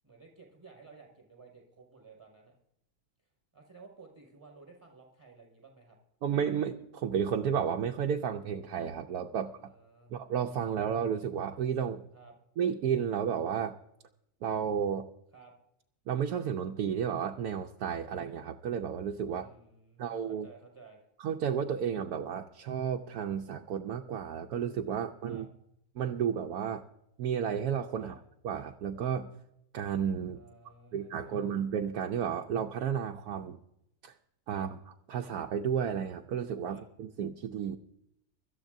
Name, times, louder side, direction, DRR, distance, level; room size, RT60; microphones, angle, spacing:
voice 1, 0.0-2.6 3.5-6.0 9.3-10.1 12.1-12.3 15.3-15.5 19.3-21.1 25.3-25.4 28.0-28.1 30.3-31.6 34.5-34.7 36.7-36.8, right 4 dB, 15° right, 1 dB, 5.5 m, -55 dB
voice 2, 6.2-9.5 10.1-12.0 12.6-13.7 14.4-15.1 16.1-19.5 20.0-20.5 21.2-25.5 26.0-26.8 27.2-28.1 28.4-29.3 29.7-30.4 30.9-33.6 34.0-34.1 34.5-34.8 35.1-37.8, right 8 dB, 80° right, 2 dB, 1.2 m, -32 dB
24.0 x 13.0 x 2.6 m, 0.81 s
omnidirectional pair, 1.6 m